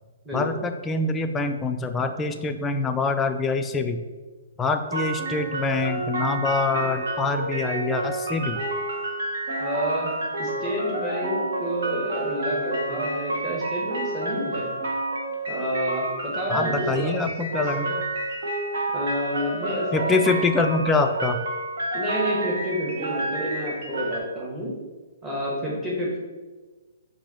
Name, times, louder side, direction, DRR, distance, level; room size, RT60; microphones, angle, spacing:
voice 1, 0.3-4.0 4.6-8.6 16.5-18.0 19.9-21.4, left 3 dB, 15° left, 6 dB, 0.3 m, -25 dB
sound 1, 4.9-24.2, right 2 dB, 70° right, 1.1 m, -29 dB
voice 2, 9.6-10.1 10.4-14.7 15.5-17.1 18.9-20.2 21.9-24.7 25.2-26.2, equal, 10° right, -7 dB, 1.2 m, -29 dB
4.4 x 2.6 x 4.1 m, 1.3 s
hypercardioid pair, 140°, 0 cm